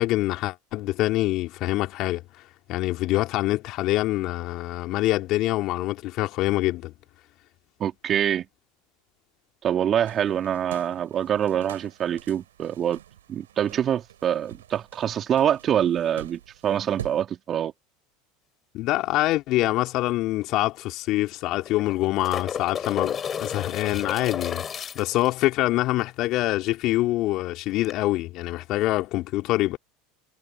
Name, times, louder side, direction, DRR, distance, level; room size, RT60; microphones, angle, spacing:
voice 1, 0.0-2.2 2.7-6.9 18.7-29.8, left 17 dB, 55° left, 3.1 m, -25 dB
voice 2, 7.8-8.5 9.6-13.0 13.3-17.7, right 9 dB, 40° right, 3.6 m, -25 dB
sound 1, 10.0-17.2, right 11 dB, 80° right, 6.2 m, -45 dB
sound 2, 20.1-20.2 20.4-20.5 21.6-25.3 27.8-27.9, left 7 dB, 35° left, 6.9 m, -32 dB
hypercardioid pair, 80°, 0 cm